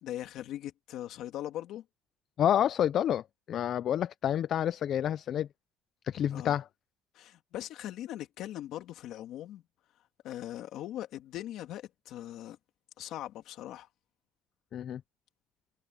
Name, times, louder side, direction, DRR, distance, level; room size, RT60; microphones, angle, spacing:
voice 1, 0.0-1.8 6.3-6.6 7.1-9.6 10.2-12.6 13.0-13.9, left 13 dB, 60° left, 2.5 m, -40 dB
voice 2, 2.4-5.5 6.0-6.7 14.7-15.0, left 10 dB, 40° left, 0.4 m, -29 dB
cardioid pair, 165°, 0 cm